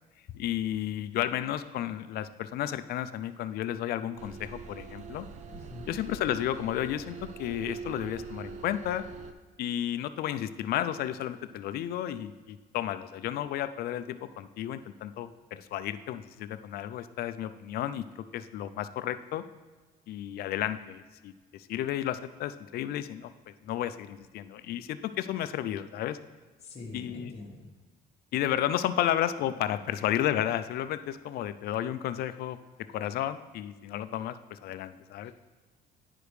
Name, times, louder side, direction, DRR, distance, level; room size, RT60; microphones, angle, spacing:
voice 1, 0.3-5.3 5.9-9.0 9.6-19.4 20.1-26.2 26.9-27.3 28.3-32.6 32.9-35.3, left 11 dB, 65° left, 12 dB, 0.4 m, -32 dB
sound 1, 4.2-9.3, right 5 dB, 45° right, 0.5 m, -43 dB
voice 2, 5.5-5.9 26.6-27.7 35.2-35.3, left 3 dB, 40° left, -2 dB, 1.2 m, -44 dB
9.6 x 5.0 x 3.2 m, 1.3 s
cardioid pair, 110°, 17 cm